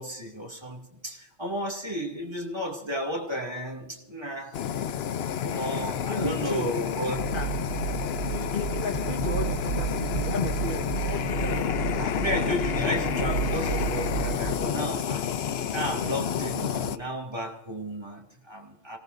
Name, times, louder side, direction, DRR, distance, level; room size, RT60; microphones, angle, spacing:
voice 1, 0.0-4.6 5.4-7.3 8.5-8.6 11.9-15.3 15.7-19.0, equal, 20° right, 0 dB, 2.5 m, -33 dB
Fire, 4.5-17.0, left 8 dB, 60° left, 0.8 m, -30 dB
voice 2, 6.1-6.7 7.3-7.5 8.3-11.7, left 3 dB, 45° left, 3 dB, 1.6 m, -33 dB
sound 1, 7.1-14.5, right 7 dB, 85° right, 1.6 m, -32 dB
26.0 x 18.0 x 2.6 m, 0.96 s
omnidirectional pair, 1.3 m